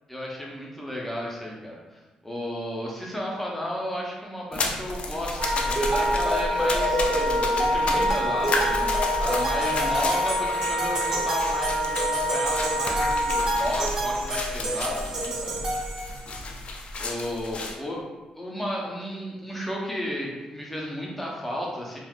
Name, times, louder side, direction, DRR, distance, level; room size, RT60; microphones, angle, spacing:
voice 1, 0.1-15.6 17.0-18.0 18.3-22.0, equal, 5° left, -3 dB, 0.7 m, -33 dB
sound 1, 4.5-17.8, left 2 dB, 55° left, 0.4 m, -32 dB
Wind instrument woodwind instrument, 5.4-13.7, left 1 dB, 90° right, 1.4 m, -27 dB
sound 2, 5.8-16.4, right 1 dB, 40° right, 1.2 m, -29 dB
3.3 x 2.4 x 2.4 m, 1.2 s
cardioid pair, 85°, 2 cm